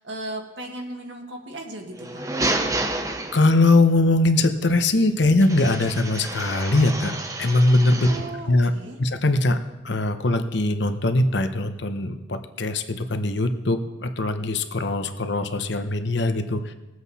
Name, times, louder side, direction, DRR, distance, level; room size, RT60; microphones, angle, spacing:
voice 1, 0.0-2.2 7.9-9.0, right 2 dB, 70° right, 2 dB, 1.8 m, -36 dB
sound 1, 1.9-3.8 5.4-8.4, right 2 dB, 15° right, 0.7 m, -30 dB
voice 2, 3.3-8.1 8.5-8.7 9.0-9.6 9.8-16.7, left 2 dB, 65° left, 8 dB, 0.9 m, -21 dB
20.0 x 7.9 x 4.2 m, 1.1 s
head